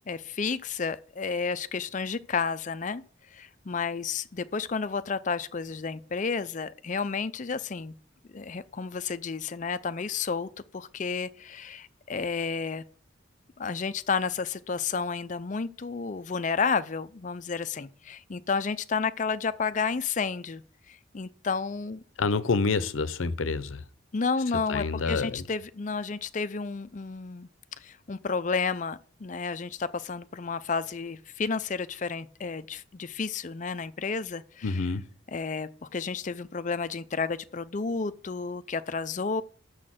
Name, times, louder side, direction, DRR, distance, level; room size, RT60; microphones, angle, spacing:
voice 1, 0.1-3.0 3.3-7.9 8.3-12.8 13.6-22.0 24.1-27.5 27.8-34.8 35.3-39.4, left 5 dB, 40° left, 0.5 m, -31 dB
voice 2, 22.2-23.8 24.7-25.4 34.6-35.1, left 4 dB, 85° left, 0.7 m, -27 dB
6.5 x 6.4 x 7.6 m
head